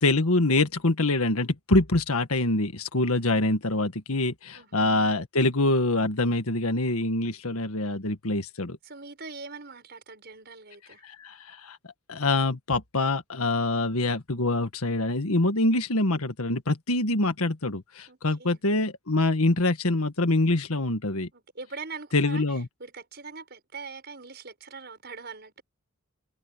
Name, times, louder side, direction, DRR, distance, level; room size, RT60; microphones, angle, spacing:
voice 1, 0.0-8.8 11.0-11.8 12.1-21.3 22.1-22.7, left 2 dB, 80° left, 1.7 m, -25 dB
voice 2, 8.8-11.0 18.1-18.6 21.3-25.6, right 4 dB, 50° right, 6.3 m, -42 dB
head